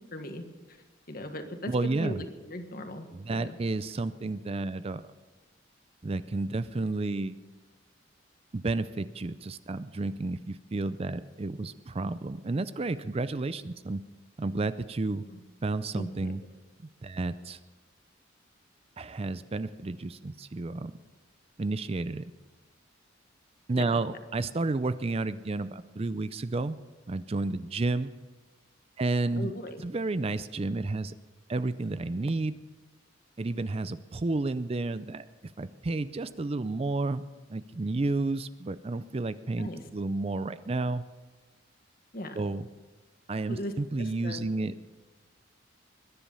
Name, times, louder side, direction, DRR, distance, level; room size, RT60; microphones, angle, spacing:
voice 1, 0.1-0.4 0.7-3.5 15.3-15.4 15.9-16.3 23.8-24.2 29.4-29.8 39.6-39.8 42.1-42.4 43.5-44.5, left 1 dB, 50° left, 6 dB, 1.6 m, -39 dB
voice 2, 1.7-2.2 3.1-5.0 6.0-7.4 8.5-14.0 14.4-15.2 15.6-16.4 17.0-17.6 19.0-20.9 21.6-22.3 23.7-26.8 27.1-28.1 29.0-29.5 29.8-31.1 31.5-32.5 33.4-35.3 35.6-37.2 37.5-39.7 39.9-41.0 42.4-42.7 43.3-44.7, right 2 dB, 30° right, 14 dB, 0.4 m, -31 dB
21.0 x 10.5 x 5.6 m, 1.2 s
head